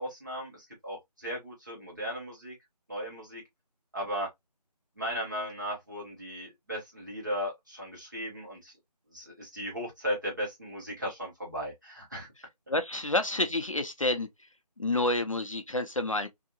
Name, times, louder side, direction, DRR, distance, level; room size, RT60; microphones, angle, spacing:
voice 1, 0.0-2.5 2.9-3.4 3.9-4.3 5.0-8.7 9.1-12.3, equal, 30° right, 1.2 m, -36 dB
voice 2, 12.7-14.5 14.8-16.3, left 2 dB, 50° left, 0.4 m, -29 dB
2.7 x 2.7 x 2.5 m
figure-of-eight pair, 180°, 21 cm